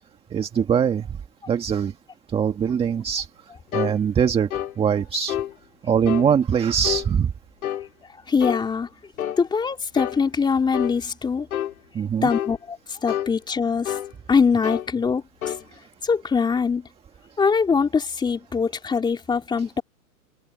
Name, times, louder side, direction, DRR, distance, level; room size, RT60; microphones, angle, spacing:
voice 1, 0.3-1.2 1.5-1.9 2.3-3.3 3.7-4.5 4.8-5.4 5.8-7.3 11.9-12.3, right 7 dB, 15° right, 1.7 m, -22 dB
sound 1, 3.7-4.0 4.5-4.7 5.3-5.5 6.1-6.3 6.8-7.1 7.6-7.9 8.4-8.7 9.2-9.4 10.0-10.2 10.7-11.0 11.5-11.7 12.3-12.6 13.1-13.3 13.9-14.1 14.6-14.9 15.4-15.6, left 11 dB, 70° left, 3.0 m, -28 dB
voice 2, 8.3-8.9 9.4-11.5 12.2-14.0 14.3-15.5 16.0-16.9 17.4-19.8, left 5 dB, 10° left, 3.7 m, -23 dB
hypercardioid pair, 145°, 44 cm